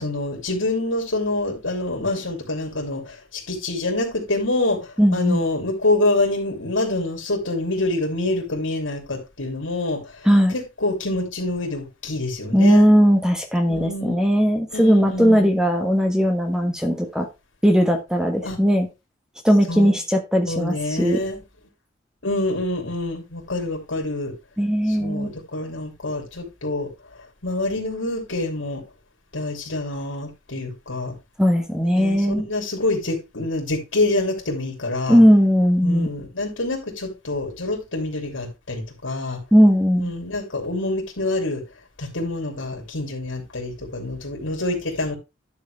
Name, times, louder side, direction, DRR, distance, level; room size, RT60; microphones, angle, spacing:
voice 1, 0.0-12.9 13.7-14.2 14.7-15.5 18.4-18.6 19.7-19.9 20.5-21.4 22.2-24.3 24.9-26.9 27.4-28.8 29.3-31.1 31.8-35.2 35.8-39.4 40.0-41.6 42.0-45.1, left 2 dB, 80° left, 3.1 m, -26 dB
voice 2, 5.0-5.4 10.2-10.5 12.5-17.3 17.6-18.9 19.4-21.2 24.6-25.3 31.4-32.5 35.1-36.1 39.5-40.1, equal, 5° right, 1.3 m, -18 dB
11.5 x 6.6 x 3.3 m
head